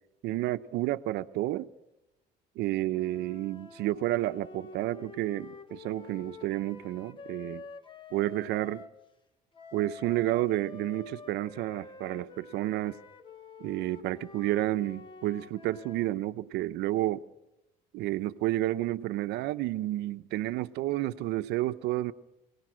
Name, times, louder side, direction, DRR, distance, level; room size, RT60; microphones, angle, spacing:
voice 1, 0.2-1.7 2.6-7.6 8.1-8.8 9.7-13.0 13.6-17.2 17.9-22.1, right 15 dB, 85° right, 0.8 m, -30 dB
sound 1, 2.9-9.0 9.5-16.2, left 4 dB, 30° left, 1.5 m, -48 dB
27.0 x 18.0 x 6.3 m
cardioid pair, 110°, 17 cm